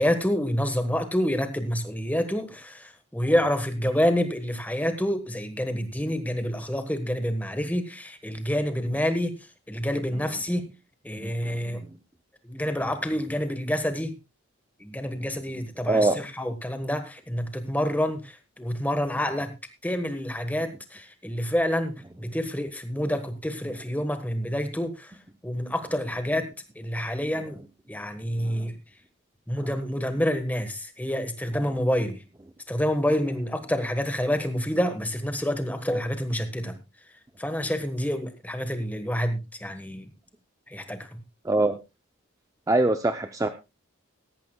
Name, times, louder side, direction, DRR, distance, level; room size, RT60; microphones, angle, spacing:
voice 1, 0.0-9.3 9.7-10.7 11.0-11.8 12.4-14.1 14.8-19.5 19.8-25.1 25.4-26.5 26.8-27.6 27.9-28.7 29.5-32.2 32.7-36.8 37.4-40.1 40.7-41.1, equal, 5° left, 8 dB, 1.3 m, -28 dB
voice 2, 11.2-11.8 15.2-15.3 15.9-16.2 28.4-28.7 41.4-41.8 42.7-43.5, right 2 dB, 15° right, 8 dB, 0.5 m, -24 dB
17.5 x 14.0 x 2.3 m, 0.26 s
head